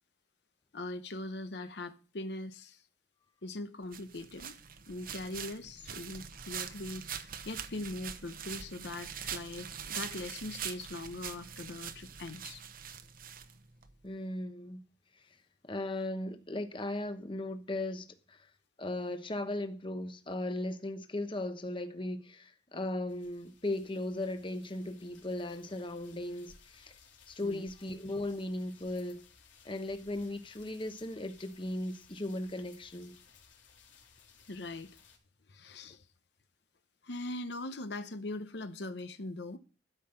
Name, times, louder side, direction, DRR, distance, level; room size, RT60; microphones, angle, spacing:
voice 1, 0.7-2.8 3.4-4.5 4.9-12.6 27.4-27.7 34.5-34.9 35.5-36.1 37.0-39.6, left 2 dB, 60° left, 0.8 m, -41 dB
sound 1, 3.9-13.9, right 8 dB, 50° right, 0.9 m, -43 dB
voice 2, 14.0-14.8 15.6-18.5 18.8-27.0 27.3-29.2 29.6-33.2, left 1 dB, 25° left, 1.0 m, -37 dB
sound 2, 23.1-35.2, left 6 dB, 85° left, 3.0 m, -60 dB
12.5 x 5.6 x 7.8 m
head